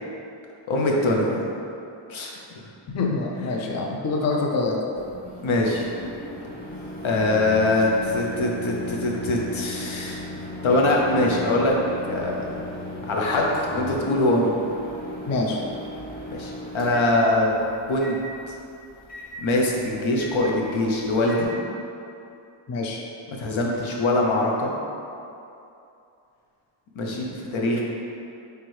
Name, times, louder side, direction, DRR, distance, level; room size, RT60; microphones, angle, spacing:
voice 1, 0.7-1.5 2.1-2.6 3.5-3.7 5.4-5.8 7.0-11.7 12.0-12.5 13.1-14.5 16.3-17.5 17.9-18.2 18.5-18.6 19.4-21.5 23.3-24.7 27.0-27.8, left 2 dB, 75° left, -2 dB, 0.8 m, -23 dB
voice 2, 2.9-4.8 15.3-15.6 22.7-23.0, left 3 dB, 35° left, 0 dB, 0.4 m, -25 dB
Microwave oven, 5.0-21.4, left 1 dB, 20° left, 0.8 m, -37 dB
4.3 x 3.3 x 3.1 m, 2.7 s
wide cardioid pair, 110°, 48 cm